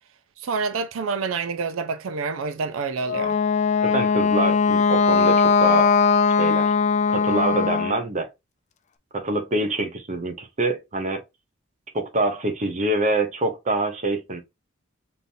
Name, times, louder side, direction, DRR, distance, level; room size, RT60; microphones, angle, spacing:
voice 1, 0.4-3.4, right 4 dB, 85° right, 0.4 m, -27 dB
Wind instrument woodwind instrument, 3.0-8.0, left 5 dB, 35° left, 0.4 m, -20 dB
voice 2, 3.8-5.9 6.4-6.7 7.1-8.3 9.1-11.2 11.9-14.4, right 2 dB, 35° right, 0.9 m, -25 dB
5.3 x 2.8 x 2.6 m
head